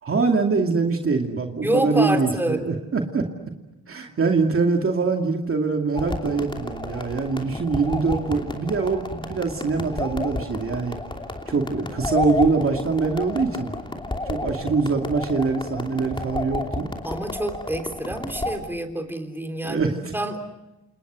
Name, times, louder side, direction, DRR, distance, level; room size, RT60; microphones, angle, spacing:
voice 1, 0.0-3.3 3.9-11.0 11.5-13.7 14.2-16.9 19.6-20.1, right 4 dB, 40° right, 2 dB, 2.5 m, -23 dB
voice 2, 1.6-2.6 17.0-20.4, right 1 dB, 5° right, 5 dB, 3.5 m, -27 dB
sound 1, 6.0-18.6, left 2 dB, 15° left, 3.0 m, -31 dB
29.0 x 28.5 x 6.3 m, 0.98 s
cardioid pair, 110°, 32 cm